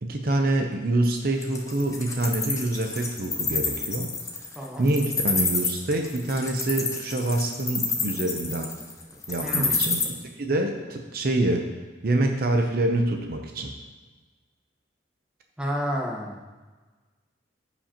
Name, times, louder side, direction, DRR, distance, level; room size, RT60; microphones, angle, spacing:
voice 1, 0.0-4.1 4.8-8.7 9.3-11.7 12.0-13.7, right 2 dB, 50° right, 3 dB, 0.7 m, -26 dB
Wild animals, 1.4-10.0, left 4 dB, 15° left, 0.8 m, -28 dB
voice 2, 4.5-4.9 9.4-9.8 15.6-16.4, equal, 5° right, -3 dB, 1.1 m, -30 dB
15.0 x 5.0 x 2.9 m, 1.3 s
head